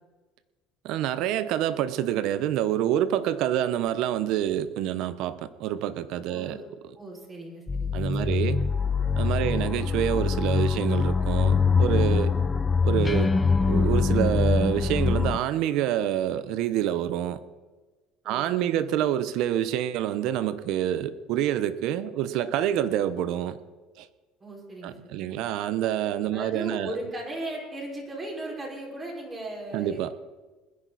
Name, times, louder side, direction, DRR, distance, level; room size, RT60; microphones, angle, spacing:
voice 1, 0.8-6.6 7.9-8.6 9.2-12.3 12.8-13.3 13.6-17.4 18.3-23.6 24.0-24.1 24.8-26.9 29.7-30.1, right 11 dB, 70° right, 14 dB, 1.0 m, -27 dB
voice 2, 6.3-6.6 6.9-8.5 18.2-18.9 24.4-25.3 26.3-30.0, right 1 dB, 25° right, -2 dB, 5.5 m, -37 dB
sound 1, 7.7-15.4, left 5 dB, 20° left, 0.7 m, -23 dB
20.5 x 10.5 x 4.2 m, 1.2 s
supercardioid pair, 110°, 0 cm